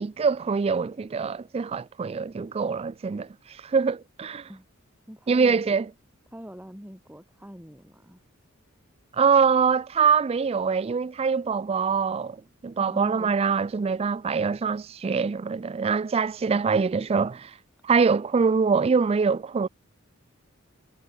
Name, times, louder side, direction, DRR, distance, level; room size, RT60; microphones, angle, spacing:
voice 1, 0.0-3.3 3.6-4.5 5.3-5.9 9.2-17.5 17.8-19.7, right 5 dB, 30° right, 0.3 m, -24 dB
voice 2, 5.1-5.8 6.3-8.2 12.7-13.3, equal, 10° right, 6.7 m, -43 dB
head